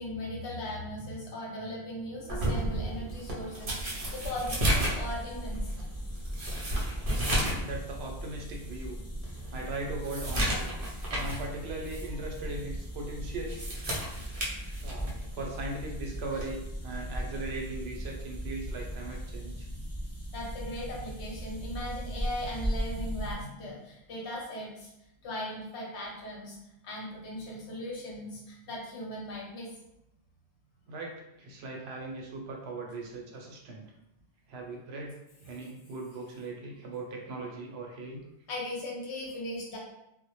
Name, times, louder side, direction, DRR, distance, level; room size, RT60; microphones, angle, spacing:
voice 1, 0.0-5.6 19.5-19.6 20.3-24.9 25.2-26.6 26.8-29.7 38.5-39.8, left 1 dB, 80° left, -3 dB, 1.0 m, -38 dB
sound 1, 2.3-7.7 8.0-8.1 8.7-8.8 9.2-11.5 11.8-12.1 13.3-15.3 16.3-16.6, right 1 dB, 45° right, 0.5 m, -32 dB
sound 2, 4.4-23.3, equal, 25° left, 0.3 m, -38 dB
voice 2, 7.6-9.0 9.5-10.7 11.2-13.6 14.8-19.7 30.9-33.9 34.5-35.1 35.5-38.2, right 2 dB, 70° right, 0 dB, 0.8 m, -39 dB
2.1 x 2.1 x 2.8 m, 0.87 s
omnidirectional pair, 1.1 m